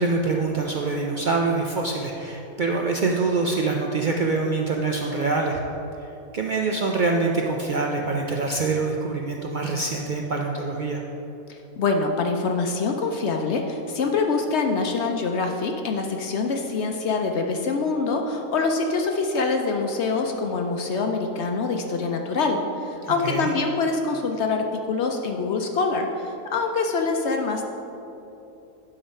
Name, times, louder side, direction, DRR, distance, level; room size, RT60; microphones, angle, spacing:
voice 1, 0.0-5.6 6.3-11.0 23.0-23.5, right 3 dB, 85° right, 0 dB, 0.4 m, -25 dB
voice 2, 11.5-27.6, left 4 dB, 65° left, 3 dB, 0.7 m, -25 dB
11.0 x 3.9 x 5.4 m, 3.0 s
omnidirectional pair, 1.5 m